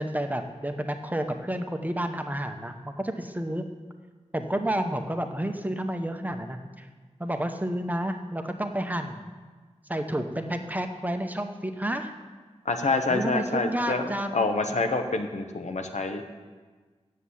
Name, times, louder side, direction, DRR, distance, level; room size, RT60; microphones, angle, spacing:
voice 1, 0.0-3.7 4.3-6.9 7.2-9.3 9.9-12.1 13.1-14.4, right 1 dB, 15° right, 5 dB, 0.9 m, -30 dB
voice 2, 12.6-16.2, left 3 dB, 80° left, 5 dB, 0.9 m, -27 dB
7.7 x 7.5 x 8.3 m, 1.4 s
wide cardioid pair, 70°, 12 cm